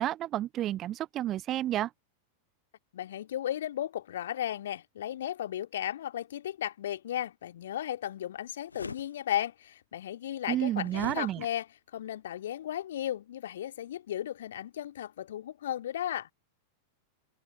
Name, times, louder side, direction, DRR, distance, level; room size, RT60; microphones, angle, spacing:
voice 1, 0.0-1.9 10.5-11.5, right 13 dB, 30° right, 0.3 m, -31 dB
voice 2, 2.9-11.7 11.9-16.3, left 11 dB, 60° left, 2.1 m, -35 dB
sound 1, 8.7-9.1 10.9-11.2, left 4 dB, 75° left, 0.4 m, -39 dB
figure-of-eight pair, 90°, 0 cm